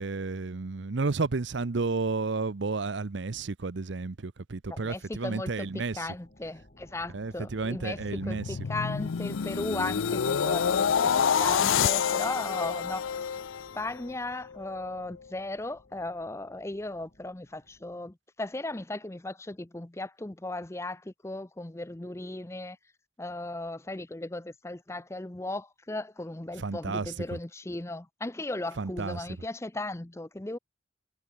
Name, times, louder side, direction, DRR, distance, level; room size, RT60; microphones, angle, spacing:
voice 1, 0.0-6.1 7.1-8.6 26.6-27.4 28.8-29.2, right 3 dB, 65° right, 0.7 m, -32 dB
voice 2, 4.7-11.1 11.4-13.0 13.7-22.8 23.2-30.6, left 2 dB, 15° left, 0.6 m, -36 dB
sound 1, 5.3-17.9, left 1 dB, 40° left, 3.4 m, -55 dB
sound 2, 7.9-14.1 14.5-14.8, left 7 dB, 85° left, 0.5 m, -28 dB
head